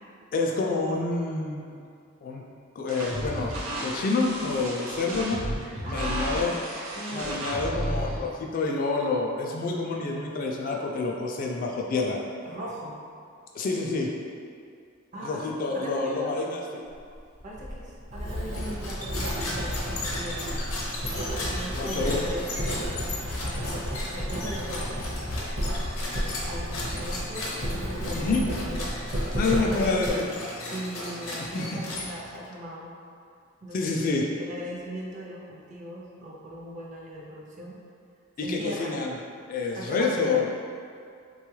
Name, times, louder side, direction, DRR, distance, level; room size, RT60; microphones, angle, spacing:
voice 1, 0.3-1.8 2.2-2.4 2.8-5.4 5.9-6.5 7.1-12.2 13.5-14.1 15.2-16.8 21.7-22.2 28.1-28.4 29.3-30.3 31.5-32.0 33.7-34.2 38.4-39.2 39.5-40.4, left 3 dB, 45° left, 0 dB, 0.3 m, -28 dB
sound 1, 2.9-8.2, right 1 dB, 85° right, 0.6 m, -33 dB
voice 2, 5.8-6.6 6.9-7.5 12.4-13.0 15.1-16.3 17.4-20.6 21.5-23.1 23.4-25.2 26.4-29.1 29.5-30.3 30.6-33.0 33.6-33.9 34.4-37.8 38.4-39.0 39.7-40.5, equal, 35° right, -3 dB, 0.5 m, -38 dB
Writing, 17.3-30.1, equal, 55° right, 1.0 m, -32 dB
sound 2, 18.5-32.5, left 1 dB, 90° left, 0.7 m, -36 dB
3.3 x 2.3 x 3.1 m, 2.3 s
head